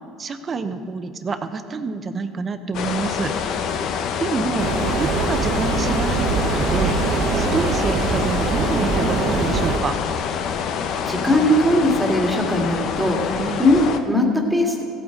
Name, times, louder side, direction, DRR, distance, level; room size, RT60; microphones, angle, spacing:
voice 1, 0.2-3.3 4.2-4.7 5.0-10.0 13.4-13.6, right 4 dB, 35° right, 9 dB, 0.9 m, -27 dB
sound 1, 2.7-14.0, left 7 dB, 60° left, 0.8 m, -26 dB
sound 2, 4.6-9.8, right 4 dB, 60° right, 1.2 m, -23 dB
voice 2, 11.1-14.8, left 1 dB, 5° right, 1 dB, 2.0 m, -19 dB
16.0 x 8.8 x 3.8 m, 2.4 s
supercardioid pair, 85°, 0 cm